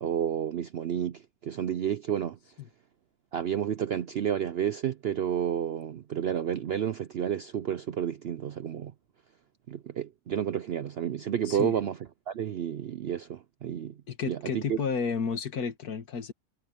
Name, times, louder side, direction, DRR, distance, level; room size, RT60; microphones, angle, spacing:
voice 1, 0.0-2.4 3.3-8.9 9.7-12.0 12.3-13.9 14.3-14.8, right 9 dB, 65° right, 0.6 m, -30 dB
voice 2, 14.1-16.3, left 5 dB, 80° left, 2.1 m, -31 dB
omnidirectional pair, 1.6 m